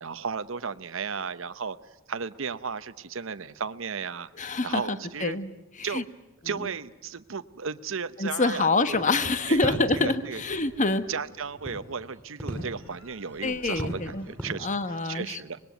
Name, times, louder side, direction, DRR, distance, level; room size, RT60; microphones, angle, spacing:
voice 1, 0.0-1.8 2.1-5.4 5.8-6.1 6.4-9.0 9.2-10.4 11.1-14.7 15.0-15.6, right 5 dB, 65° right, 12 dB, 0.8 m, -34 dB
voice 2, 4.4-5.5 5.8-6.0 8.2-11.0 13.4-14.3 14.6-15.4, left 3 dB, 35° left, 11 dB, 1.2 m, -26 dB
sound 1, 8.9-14.5, equal, 5° left, 6.9 m, -39 dB
26.0 x 20.5 x 9.2 m, 1.0 s
head